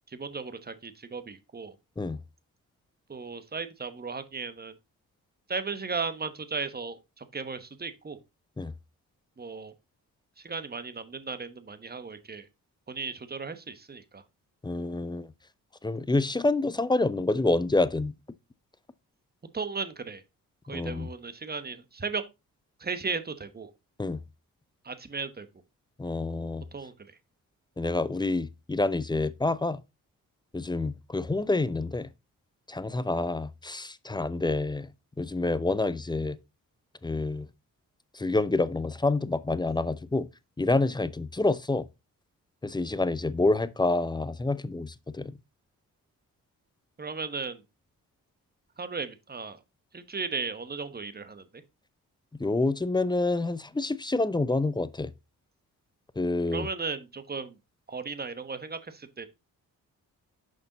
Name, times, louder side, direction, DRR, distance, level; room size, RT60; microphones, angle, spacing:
voice 1, 0.1-1.7 3.1-4.7 5.5-8.2 9.4-9.7 10.4-12.5 12.9-14.2 19.5-20.2 20.7-22.2 22.8-23.7 24.8-25.5 26.7-26.9 47.0-47.6 48.8-49.6 49.9-51.6 56.5-57.6 57.9-59.3, right 4 dB, 25° right, 1.1 m, -36 dB
voice 2, 14.6-15.3 15.8-18.1 20.7-21.1 24.0-24.2 26.0-26.6 27.8-29.8 30.5-32.1 32.7-34.9 35.2-36.4 37.0-37.5 38.1-40.3 40.6-41.9 42.6-45.4 52.4-55.1 56.2-56.7, left 2 dB, 10° left, 0.6 m, -27 dB
6.6 x 5.4 x 4.0 m
cardioid pair, 65°, 36 cm